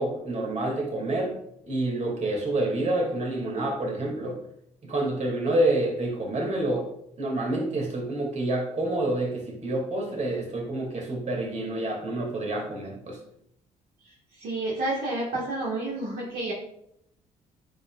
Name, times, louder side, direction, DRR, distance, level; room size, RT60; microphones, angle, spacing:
voice 1, 0.0-1.3 1.7-4.4 4.8-6.9 7.2-13.2, right 1 dB, 40° right, 0 dB, 2.5 m, -28 dB
voice 2, 14.4-16.5, right 2 dB, 70° right, -4 dB, 1.8 m, -30 dB
9.5 x 5.3 x 2.5 m, 0.73 s
hypercardioid pair, 55°, 17 cm